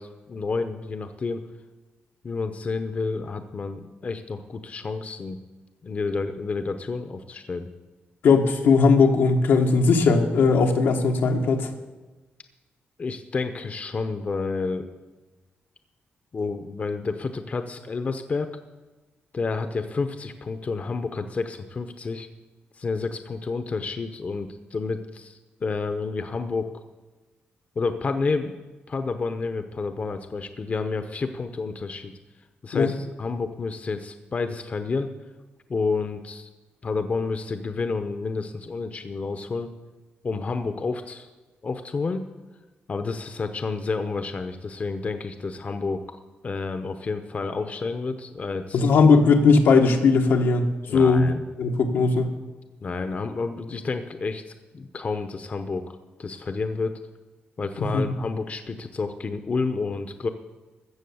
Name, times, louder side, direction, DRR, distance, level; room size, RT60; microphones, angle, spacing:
voice 1, 0.0-1.4 2.2-5.4 5.8-7.7 13.0-14.9 16.3-18.5 19.3-22.3 22.8-26.7 27.8-28.6 28.9-32.1 32.6-35.1 35.7-36.5 36.8-39.7 40.2-41.3 41.6-42.3 42.9-46.2 46.4-48.9 50.9-51.4 52.8-54.4 54.7-57.0 57.6-60.3, left 4 dB, 40° left, 8 dB, 0.8 m, -30 dB
voice 2, 8.2-11.7 32.7-32.9 48.7-51.3 51.6-52.3 57.8-58.1, left 4 dB, 85° left, 3 dB, 1.4 m, -19 dB
14.5 x 7.0 x 7.1 m, 1.2 s
cardioid pair, 105°, 4 cm